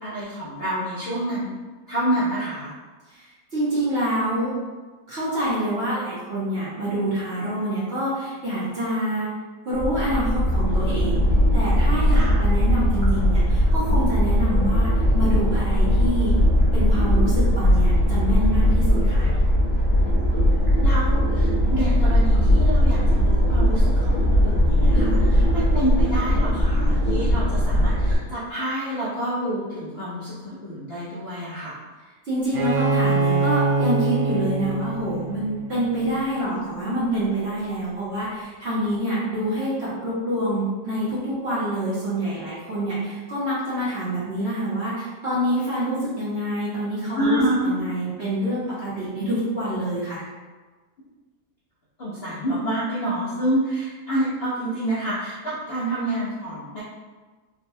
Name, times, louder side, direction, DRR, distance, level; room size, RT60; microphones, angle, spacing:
voice 1, 0.0-1.5 1.9-2.7 12.1-12.4 20.8-31.8 47.1-47.7 52.0-56.8, right 1 dB, 55° left, -10 dB, 0.6 m, -28 dB
voice 2, 3.1-4.5 5.1-9.3 9.6-16.3 16.7-19.3 32.2-50.3, right 1 dB, 45° right, -10 dB, 0.9 m, -26 dB
sound 1, 9.7-28.2, equal, 15° left, 0.9 m, -19 dB
Bowed string instrument, 32.5-36.1, right 3 dB, 80° right, 0.6 m, -24 dB
3.9 x 2.2 x 2.7 m, 1.3 s
omnidirectional pair, 1.9 m